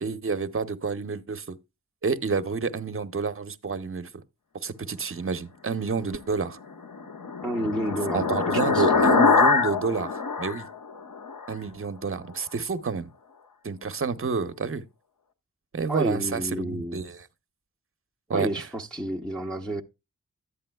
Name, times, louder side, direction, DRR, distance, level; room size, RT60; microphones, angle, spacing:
voice 1, 0.0-1.6 2.0-4.1 4.6-6.6 8.1-10.6 11.5-13.1 13.6-14.8 15.7-17.2 18.3-18.5, right 5 dB, 40° right, 0.7 m, -29 dB
sound 1, 6.7-11.5, left 5 dB, 70° left, 1.1 m, -24 dB
voice 2, 7.4-9.2 15.9-17.0 18.3-19.8, right 1 dB, 5° left, 0.7 m, -30 dB
11.5 x 8.5 x 2.2 m
wide cardioid pair, 105°, 33 cm